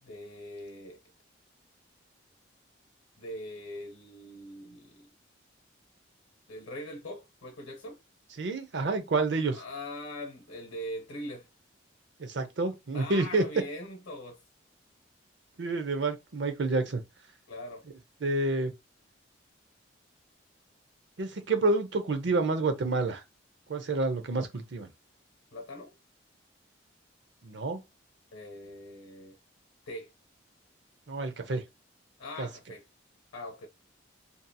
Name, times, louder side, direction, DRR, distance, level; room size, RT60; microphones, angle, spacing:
voice 1, 0.0-1.0 3.2-5.1 6.5-8.0 9.5-11.5 12.9-14.4 17.5-17.8 25.5-25.9 28.3-29.4 29.9-30.1 32.2-32.8 33.3-33.7, left 1 dB, 90° left, 0.7 m, -41 dB
voice 2, 8.4-9.6 12.2-13.5 15.6-17.0 18.2-18.7 21.2-23.2 23.7-24.9 27.4-27.8 31.1-31.6 32.4-32.5, right 3 dB, 65° right, 0.6 m, -29 dB
2.7 x 2.7 x 2.2 m
head